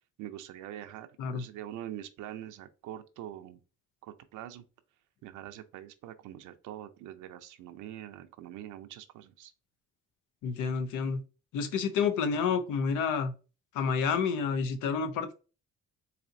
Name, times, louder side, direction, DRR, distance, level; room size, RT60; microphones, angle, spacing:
voice 1, 0.2-3.6 4.0-4.6 5.2-9.5, right 12 dB, 90° right, 0.5 m, -44 dB
voice 2, 10.4-11.2 11.5-13.3 13.7-15.3, left 6 dB, 85° left, 0.7 m, -29 dB
4.1 x 2.7 x 2.6 m
cardioid pair, 90°, 30 cm